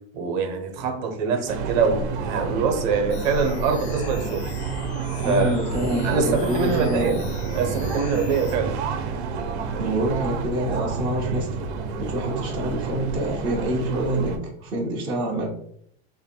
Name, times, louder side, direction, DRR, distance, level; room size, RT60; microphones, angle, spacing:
voice 1, 0.1-4.4 5.2-5.5 6.0-7.2 7.5-9.6, right 5 dB, 45° right, 4 dB, 0.8 m, -24 dB
sound 1, 1.5-14.4, right 5 dB, 85° right, 0.7 m, -30 dB
sound 2, 3.1-8.6, left 4 dB, 75° left, 0.7 m, -38 dB
voice 2, 5.2-7.2 9.8-11.6 12.0-14.3 14.6-15.4, right 1 dB, 15° right, -5 dB, 0.3 m, -26 dB
3.0 x 2.6 x 4.3 m, 0.66 s
supercardioid pair, 180°, 32 cm